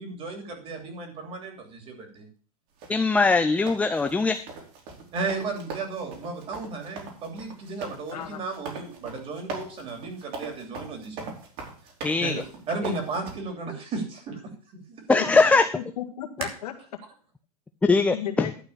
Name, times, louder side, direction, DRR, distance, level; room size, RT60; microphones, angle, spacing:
voice 1, 0.0-2.3 5.1-11.3 12.2-15.2, right 3 dB, 30° right, 4 dB, 3.1 m, -34 dB
sound 1, 2.8-13.3, right 4 dB, 50° right, 3.5 m, -40 dB
voice 2, 2.9-4.4 12.0-12.4 12.8-12.9 15.1-15.7 17.9-18.5, left 3 dB, 5° left, 8 dB, 0.5 m, -21 dB
voice 3, 8.1-8.4 15.3-16.7 18.1-18.5, left 10 dB, 85° left, 3 dB, 1.9 m, -35 dB
11.5 x 4.3 x 8.1 m, 0.41 s
supercardioid pair, 135°, 19 cm